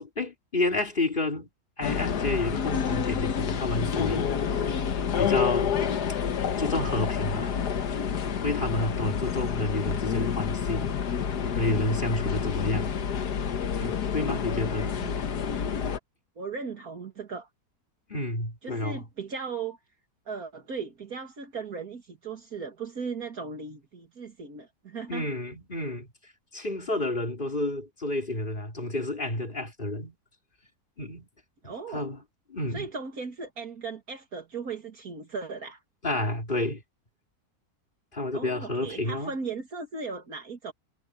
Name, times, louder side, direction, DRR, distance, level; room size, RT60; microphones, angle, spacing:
voice 1, 0.0-1.5 1.8-4.8 5.2-5.7 6.6-7.6 8.4-10.9 11.5-13.0 13.8-14.9 18.1-19.0 25.1-26.1 26.5-30.1 31.0-31.2 31.6-32.2 32.5-32.9 36.0-36.8 38.1-39.3, left 2 dB, 30° left, 2.9 m, -30 dB
sound 1, 1.8-16.0, left 7 dB, 85° left, 1.8 m, -28 dB
voice 2, 16.4-17.5 18.6-19.8 20.3-25.3 31.6-32.1 32.7-35.8 38.3-40.7, right 5 dB, 65° right, 2.6 m, -37 dB
omnidirectional pair, 1.7 m